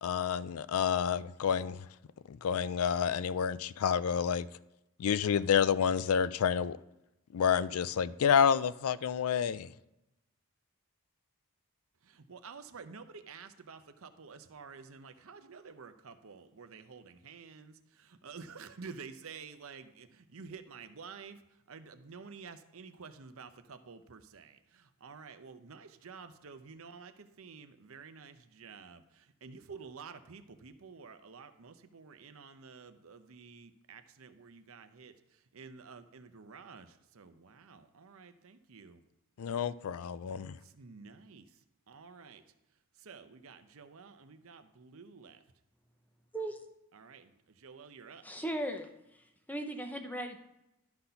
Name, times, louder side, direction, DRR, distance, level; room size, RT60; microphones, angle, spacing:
voice 1, 0.0-1.9 2.3-4.5 5.0-6.8 7.3-9.7 39.4-40.6, left 7 dB, 75° left, 0.4 m, -29 dB
voice 2, 12.0-39.0 40.6-42.4 42.9-45.4 46.9-48.2, right 5 dB, 65° right, 0.7 m, -50 dB
voice 3, 46.3-46.7 48.2-48.9 49.1-50.4, right 1 dB, 5° left, 0.7 m, -38 dB
11.5 x 4.0 x 5.6 m
head